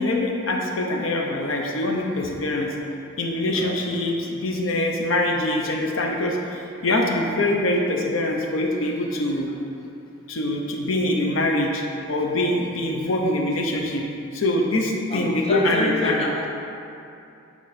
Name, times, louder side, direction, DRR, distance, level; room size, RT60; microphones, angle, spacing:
voice 1, 0.0-2.7 3.2-9.5 10.3-11.8 12.1-14.0 14.3-16.2, left 1 dB, 70° left, 1 dB, 0.7 m, -24 dB
voice 2, 15.1-16.5, left 2 dB, 30° left, -2 dB, 0.5 m, -27 dB
8.5 x 3.2 x 4.1 m, 2.7 s
head